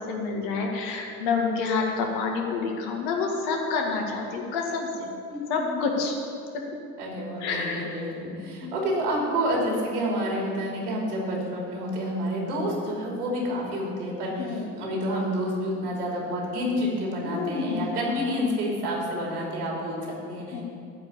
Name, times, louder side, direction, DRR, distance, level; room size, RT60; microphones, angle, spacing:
voice 1, 0.0-5.1 5.5-6.2 7.4-8.0 8.6-8.9 14.4-14.7 17.2-17.9 20.5-20.6, left 4 dB, 60° left, 1 dB, 2.0 m, -28 dB
voice 2, 5.3-5.7 7.0-20.6, equal, 85° right, -2 dB, 3.1 m, -29 dB
13.0 x 5.2 x 8.7 m, 2.4 s
hypercardioid pair, 65°, 45 cm